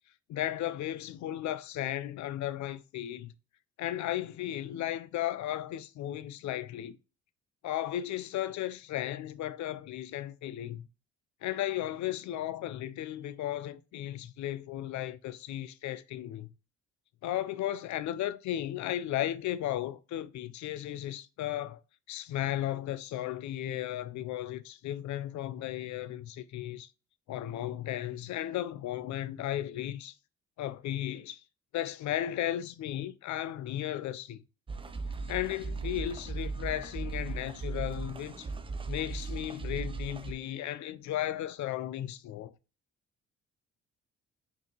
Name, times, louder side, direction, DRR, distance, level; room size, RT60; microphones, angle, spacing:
voice 1, 0.3-3.3 3.8-7.0 7.6-10.9 11.4-16.5 17.2-21.8 22.1-26.9 27.3-30.1 30.6-31.4 31.7-34.4 35.3-38.5 38.9-42.5, left 12 dB, 70° left, 0.5 m, -35 dB
sound 1, 34.7-40.3, right 3 dB, 20° right, 0.4 m, -37 dB
5.1 x 2.7 x 2.8 m
cardioid pair, 90°, 30 cm